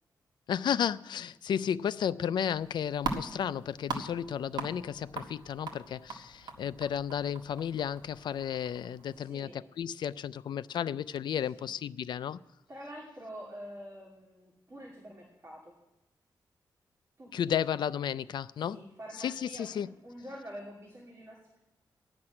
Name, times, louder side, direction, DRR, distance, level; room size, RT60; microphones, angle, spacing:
voice 1, 0.5-12.4 17.3-18.8 19.2-19.9, left 9 dB, 70° left, 0.4 m, -33 dB
sound 1, 2.4-9.2, right 4 dB, 65° right, 1.5 m, -41 dB
voice 2, 9.1-9.5 11.5-11.7 12.7-15.7 17.2-17.6 18.7-21.6, equal, 35° right, 2.6 m, -46 dB
14.5 x 6.1 x 9.8 m
wide cardioid pair, 170°, 8 cm